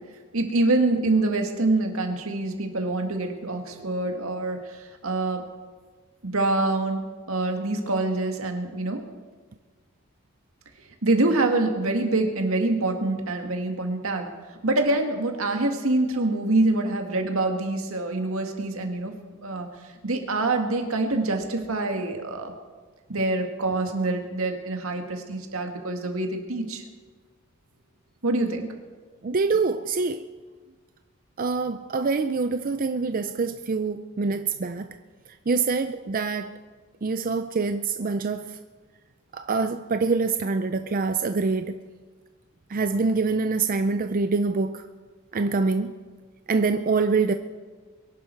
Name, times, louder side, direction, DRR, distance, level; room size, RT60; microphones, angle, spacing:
voice 1, 0.3-5.4 6.2-7.0 7.3-9.0 11.0-14.3 14.6-19.1 19.4-19.7 20.0-22.5 23.1-26.8 28.2-28.7, right 2 dB, 80° right, 4 dB, 2.0 m, -25 dB
voice 2, 29.2-30.3 31.4-34.9 35.5-36.5 37.0-38.5 39.3-41.8 42.7-44.8 45.3-45.9 46.5-47.3, right 4 dB, 40° right, 9 dB, 0.5 m, -25 dB
23.0 x 11.0 x 4.6 m, 1.4 s
head